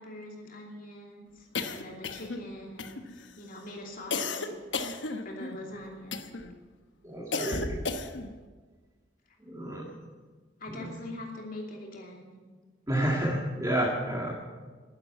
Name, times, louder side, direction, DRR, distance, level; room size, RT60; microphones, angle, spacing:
voice 1, 0.0-4.8 5.2-6.2 10.6-12.4, left 1 dB, 50° left, 0 dB, 2.8 m, -43 dB
sound 1, 1.5-2.5 2.8-3.3 4.1-5.6 6.1-6.5 7.3-8.3, left 3 dB, 75° left, 1.1 m, -34 dB
voice 2, 7.0-8.0 9.4-9.9 10.7-10.9 12.9-14.3, right 1 dB, 20° right, -4 dB, 2.0 m, -30 dB
11.5 x 11.0 x 9.2 m, 1.4 s
head